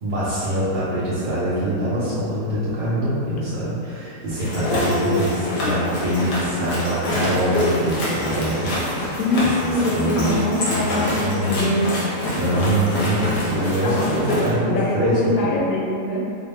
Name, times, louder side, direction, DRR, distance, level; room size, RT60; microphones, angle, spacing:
voice 1, 0.0-10.4 10.7-11.8 12.3-15.5, right 1 dB, 85° right, -13 dB, 1.8 m, -24 dB
sound 1, 4.3-14.5, left 1 dB, 90° left, 1.6 m, -26 dB
voice 2, 4.7-5.2 5.6-5.7 9.2-11.9 13.8-14.1 14.7-16.2, left 2 dB, 65° left, -3 dB, 1.0 m, -24 dB
5.1 x 2.3 x 3.5 m, 2.6 s
omnidirectional pair, 1.8 m